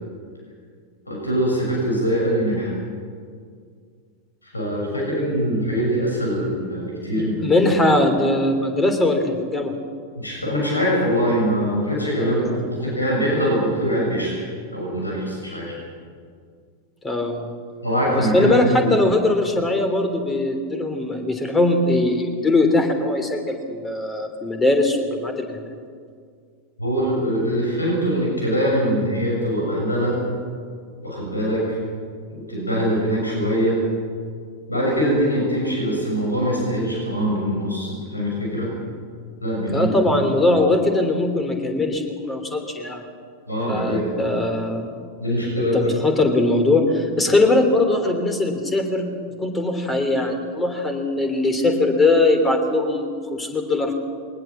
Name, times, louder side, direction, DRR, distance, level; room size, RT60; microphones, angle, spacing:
voice 1, 1.1-2.7 4.4-7.6 10.1-14.4 14.7-15.8 17.8-18.5 18.8-18.9 26.8-30.2 31.0-31.8 32.3-33.8 34.7-38.7 39.4-39.9 43.5-44.1 45.2-45.9, equal, 80° left, -2 dB, 6.7 m, -23 dB
voice 2, 7.1-9.7 12.2-12.6 17.0-17.5 18.2-25.6 39.7-43.0 43.7-44.9 45.6-53.9, left 2 dB, 15° left, 6 dB, 3.3 m, -21 dB
21.5 x 19.5 x 7.4 m, 2.1 s
figure-of-eight pair, 90°, 0 cm